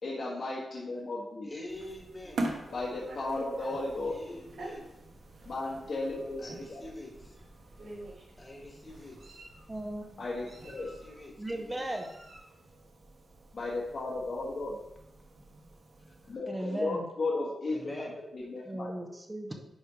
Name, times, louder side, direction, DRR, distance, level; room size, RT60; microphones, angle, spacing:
voice 1, 0.0-1.5 2.7-4.1 5.5-6.8 10.2-10.9 13.5-14.7 16.3-17.8 18.2-19.2, left 2 dB, 55° left, -6 dB, 1.4 m, -35 dB
voice 2, 1.4-2.4 4.0-4.9 6.4-7.4 8.4-9.4 10.6-11.8 16.2-16.8 17.7-18.1, left 1 dB, 20° left, 0 dB, 1.5 m, -46 dB
sound 1, 1.7-16.4, right 2 dB, 65° right, 1.4 m, -45 dB
Meow, 2.2-3.9 4.5-4.7 5.6-5.7 6.1-6.3 7.3-7.4 7.8-8.3 8.9-9.6 10.5-11.2 11.8-12.5, right 2 dB, 80° right, 2.8 m, -47 dB
voice 3, 9.7-10.2 11.4-12.1 16.5-17.1 18.7-19.6, right 1 dB, 15° right, 3 dB, 0.7 m, -36 dB
10.0 x 3.4 x 5.0 m, 0.86 s
wide cardioid pair, 165°, 0 cm